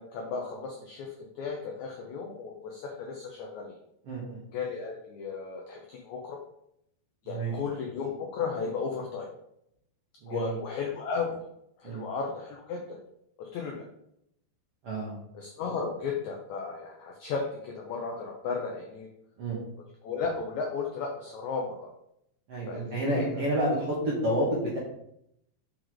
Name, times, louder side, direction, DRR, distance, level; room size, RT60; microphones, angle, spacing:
voice 1, 0.0-3.7 4.5-6.4 7.2-9.3 10.3-11.4 11.8-13.0 13.4-13.8 15.3-19.1 20.0-21.8 22.7-23.4, left 5 dB, 85° left, 1 dB, 1.6 m, -34 dB
voice 2, 4.0-4.4 7.2-7.5 10.2-10.6 11.8-12.0 14.8-15.2 19.4-19.6 22.5-24.8, right 1 dB, 60° right, -5 dB, 1.5 m, -29 dB
6.4 x 4.0 x 4.6 m, 0.77 s
omnidirectional pair, 4.4 m